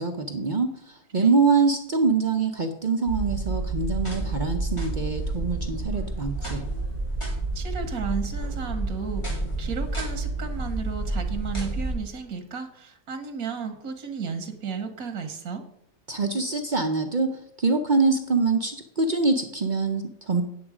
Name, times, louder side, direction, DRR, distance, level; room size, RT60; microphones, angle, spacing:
voice 1, 0.0-6.6 16.1-17.3 17.6-20.4, right 4 dB, 45° right, 5 dB, 0.7 m, -24 dB
sound 1, 3.1-11.9, right 2 dB, 20° left, 3.1 m, -30 dB
voice 2, 7.5-15.7, right 6 dB, 85° right, 6 dB, 1.6 m, -33 dB
9.4 x 7.1 x 4.9 m, 0.73 s
omnidirectional pair, 1.5 m